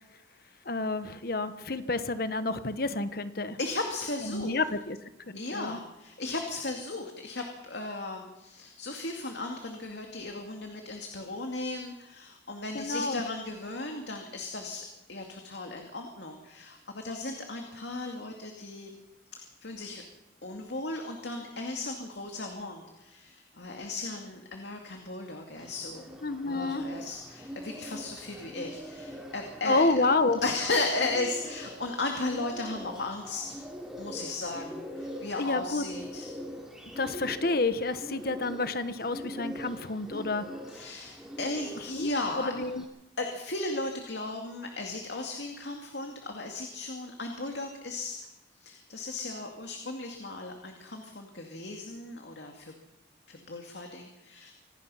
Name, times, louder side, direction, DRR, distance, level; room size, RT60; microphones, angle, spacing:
voice 1, 0.6-3.6 4.2-5.0 5.3-5.8 12.7-13.2 26.2-26.8 29.6-30.4 35.4-35.8 37.0-40.4 41.9-42.1 42.3-42.9, left 3 dB, 55° left, 11 dB, 1.1 m, -29 dB
voice 2, 3.6-4.6 5.3-14.8 15.1-19.0 19.3-20.0 20.4-26.1 26.4-29.9 30.4-33.4 34.0-36.3 40.7-42.5 43.2-48.2 48.6-52.7 53.3-54.5, left 2 dB, 70° left, 3 dB, 2.4 m, -36 dB
Bird, 25.6-42.8, equal, 5° right, 3.4 m, -42 dB
26.0 x 18.0 x 5.7 m, 0.97 s
head